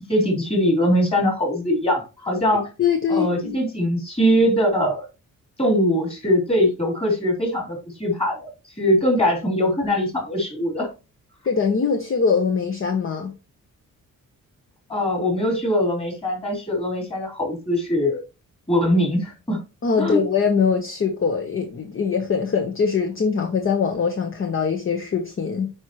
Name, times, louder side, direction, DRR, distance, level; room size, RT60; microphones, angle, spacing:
voice 1, 0.1-2.7 3.1-5.0 5.6-8.5 8.8-10.9 14.9-18.2 18.7-19.6 20.0-20.2, equal, 20° left, 3.5 m, -21 dB
voice 2, 2.8-3.5 11.4-13.3 19.8-25.7, left 6 dB, 40° left, 1.1 m, -22 dB
9.0 x 5.1 x 3.1 m
wide cardioid pair, 160°, 33 cm